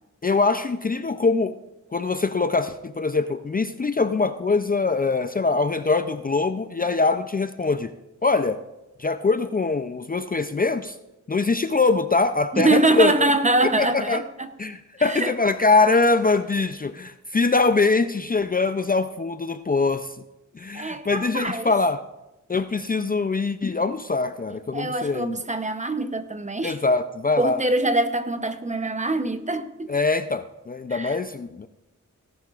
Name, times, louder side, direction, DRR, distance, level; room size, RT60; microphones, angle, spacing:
voice 1, 0.2-1.6 1.9-7.9 8.2-8.6 9.0-11.0 11.3-13.3 13.8-14.2 14.6-20.1 20.5-22.0 22.5-25.4 26.6-27.6 29.9-31.7, left 3 dB, 30° left, 0.4 m, -23 dB
voice 2, 12.5-14.5 15.0-15.3 20.7-21.7 24.7-26.8 27.4-29.9 30.9-31.2, right 2 dB, 25° right, 0.7 m, -24 dB
18.0 x 11.0 x 2.4 m
wide cardioid pair, 85°, 31 cm